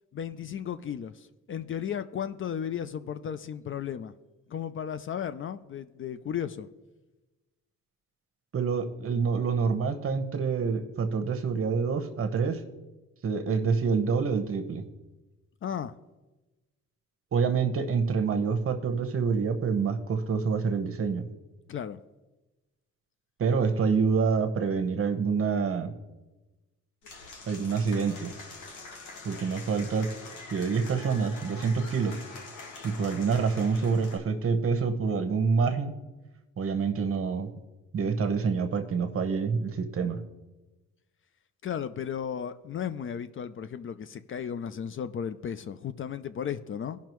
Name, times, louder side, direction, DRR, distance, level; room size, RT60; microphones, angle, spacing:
voice 1, 0.1-4.1 4.5-6.7 15.6-15.9 21.7-22.0 41.6-47.0, left 8 dB, 45° left, 12 dB, 0.5 m, -35 dB
voice 2, 8.5-12.6 13.2-14.8 17.3-21.3 23.4-25.9 27.5-28.3 29.2-30.1 30.5-32.2 32.8-35.9 36.6-37.5 37.9-40.2, right 5 dB, 45° right, 8 dB, 1.0 m, -27 dB
Applause / Crowd, 27.0-34.2, left 3 dB, 80° left, 1.6 m, -44 dB
16.5 x 5.7 x 3.1 m, 1.1 s
cardioid pair, 90°, 30 cm